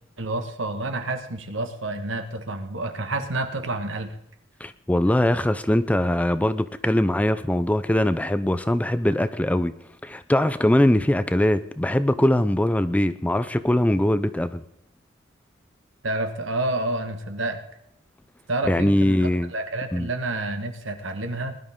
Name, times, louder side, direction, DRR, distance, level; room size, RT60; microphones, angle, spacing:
voice 1, 0.2-4.2 16.0-17.6 18.5-21.6, right 2 dB, 70° right, 7 dB, 1.5 m, -29 dB
voice 2, 4.6-9.7 10.0-14.6 18.6-19.5 19.9-20.1, left 1 dB, 5° left, 12 dB, 0.4 m, -21 dB
20.0 x 11.5 x 3.6 m, 0.77 s
head